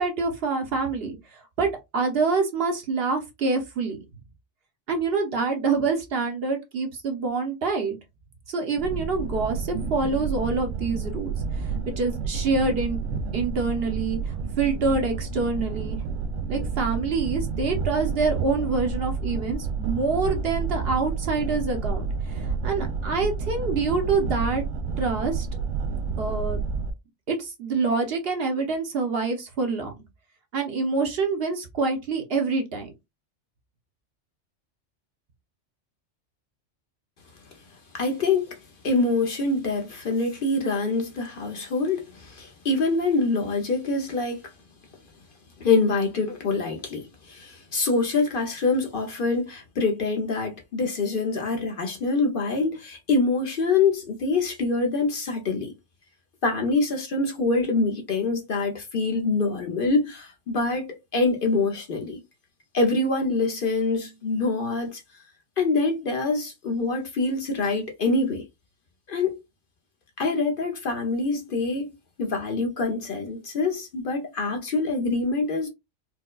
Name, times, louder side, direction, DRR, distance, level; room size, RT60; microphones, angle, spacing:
voice 1, 0.0-4.0 4.9-8.0 8.5-13.0 13.3-16.0 16.5-24.6 25.0-25.5 26.2-26.6 27.3-29.9 30.5-32.9, right 4 dB, 60° right, 0.9 m, -26 dB
sound 1, 8.8-26.9, right 5 dB, 90° right, 1.0 m, -30 dB
voice 2, 37.9-38.6 38.8-44.4 45.6-55.7 56.4-60.8 61.1-62.2 62.7-65.0 65.6-68.4 69.1-69.4 70.2-71.9 72.2-75.7, left 3 dB, 55° left, 0.8 m, -25 dB
4.4 x 2.2 x 2.3 m
omnidirectional pair, 1.2 m